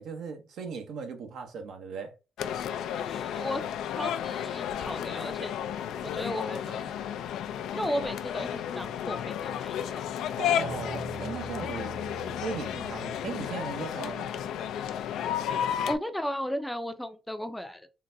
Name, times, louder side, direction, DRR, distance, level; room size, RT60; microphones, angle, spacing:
voice 1, 0.0-2.1 10.4-11.9 12.4-14.3, right 5 dB, 75° right, 0.9 m, -38 dB
sound 1, 2.4-16.0, left 9 dB, 85° left, 0.3 m, -33 dB
voice 2, 3.0-3.6 3.9-5.6 6.0-7.2 7.7-10.0 15.6-17.9, equal, 5° left, 0.4 m, -35 dB
Guitar, 10.4-13.6, right 4 dB, 35° right, 0.6 m, -43 dB
3.8 x 2.2 x 2.6 m
cardioid pair, 90°, 0 cm